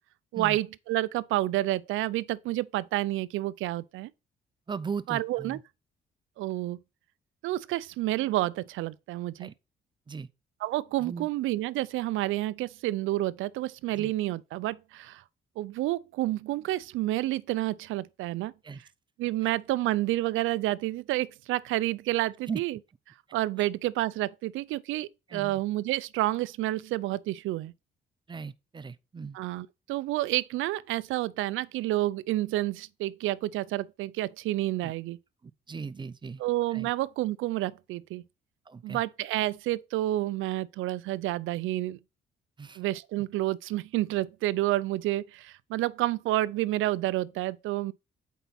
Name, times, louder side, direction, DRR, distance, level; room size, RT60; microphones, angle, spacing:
voice 1, 0.3-4.1 5.1-5.6 6.4-6.8 7.4-9.5 10.6-15.2 15.6-18.5 19.2-22.8 23.3-27.7 29.3-35.2 36.4-38.2 38.8-42.0 42.8-47.9, right 16 dB, 85° right, 0.4 m, -29 dB
voice 2, 4.7-5.6 9.4-9.5 10.1-10.3 11.0-11.3 13.9-14.1 18.6-18.8 22.5-22.6 23.6-23.7 25.3-25.6 28.3-29.4 34.8-34.9 35.4-36.4 36.7-36.9 38.7-39.0 42.6-42.8, right 5 dB, 25° right, 0.6 m, -38 dB
7.9 x 4.6 x 4.1 m
cardioid pair, 90°, 20 cm